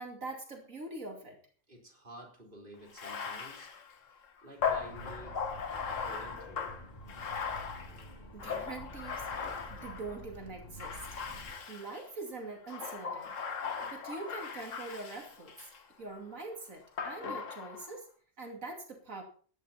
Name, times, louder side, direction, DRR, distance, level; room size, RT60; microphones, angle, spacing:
voice 1, 0.0-1.4 8.3-11.2 11.7-13.3 13.8-15.5 16.0-18.1 18.4-19.2, right 3 dB, 80° right, 2 dB, 3.0 m, -43 dB
voice 2, 1.7-3.7 4.4-5.4 5.9-6.7, right 1 dB, 40° right, 0 dB, 4.0 m, -51 dB
Bathtub (filling or washing), 2.9-10.2 10.8-12.1 12.6-15.8 17.0-17.9, left 6 dB, 70° left, 1.7 m, -38 dB
sound 1, 4.6-11.5, equal, 30° left, 5.8 m, -49 dB
15.5 x 11.0 x 4.3 m, 0.42 s
omnidirectional pair, 1.4 m